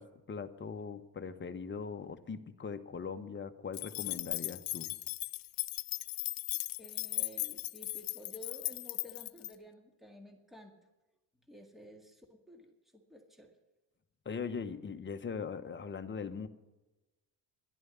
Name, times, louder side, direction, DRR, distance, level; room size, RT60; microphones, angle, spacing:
voice 1, 0.0-4.9 14.2-16.5, left 5 dB, 30° left, 8 dB, 1.1 m, -40 dB
sound 1, 3.7-9.5, left 18 dB, 60° left, 0.5 m, -37 dB
voice 2, 6.8-10.7 11.5-13.5, left 1 dB, ahead, 3 dB, 1.9 m, -52 dB
11.5 x 11.0 x 7.1 m, 1.1 s
cardioid pair, 100°, 40 cm